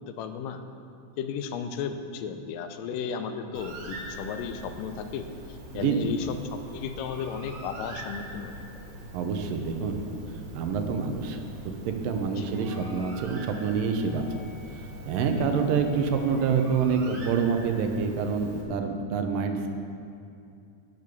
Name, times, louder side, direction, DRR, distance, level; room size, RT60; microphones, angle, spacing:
voice 1, 0.1-0.6 1.2-5.3 5.7-8.5 12.4-12.5 15.3-15.5, left 7 dB, 90° left, 8 dB, 2.3 m, -34 dB
Bird, 3.5-18.6, right 1 dB, 70° right, 3.3 m, -43 dB
voice 2, 5.7-6.1 9.1-10.0 10.5-11.4 11.9-14.4 15.1-19.7, right 5 dB, 90° right, 5 dB, 2.6 m, -27 dB
Wind instrument woodwind instrument, 12.5-16.5, left 2 dB, 70° left, 3.8 m, -50 dB
10.5 x 6.8 x 8.4 m, 2.6 s
omnidirectional pair, 3.8 m